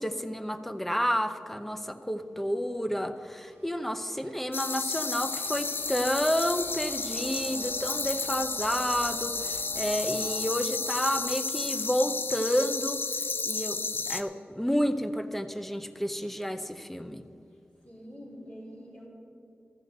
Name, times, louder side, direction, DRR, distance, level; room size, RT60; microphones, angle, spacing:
voice 1, 0.0-13.0 13.5-13.8 14.1-17.2, equal, 5° left, 10 dB, 0.6 m, -30 dB
sound 1, 2.3-12.6, right 3 dB, 85° right, 1.3 m, -49 dB
sound 2, 4.5-14.2, left 4 dB, 60° left, 0.6 m, -32 dB
voice 2, 17.8-19.1, equal, 35° left, -4 dB, 3.6 m, -46 dB
13.0 x 7.5 x 6.6 m, 2.5 s
wide cardioid pair, 70°, 4 cm